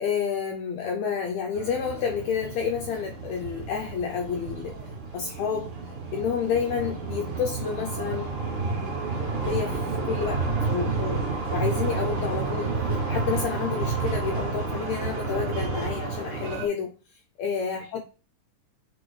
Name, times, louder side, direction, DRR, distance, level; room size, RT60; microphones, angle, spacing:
voice 1, 0.0-4.8 5.1-5.7 6.1-8.4 9.4-12.8 13.1-16.9 17.4-18.0, left 6 dB, 85° left, 1.6 m, -30 dB
sound 1, 1.5-16.7, right 3 dB, 45° right, 2.2 m, -30 dB
8.7 x 4.2 x 3.1 m
omnidirectional pair, 3.9 m